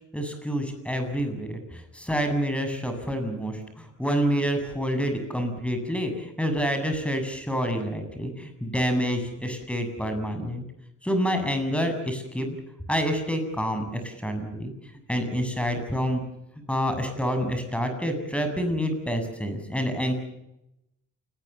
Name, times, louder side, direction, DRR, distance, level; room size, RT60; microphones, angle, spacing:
voice 1, 0.1-10.6 11.0-12.6 12.9-14.7 15.1-16.2 16.7-20.1, equal, 5° left, 7 dB, 7.8 m, -28 dB
29.0 x 20.5 x 7.1 m, 0.87 s
cardioid pair, 90°, 30 cm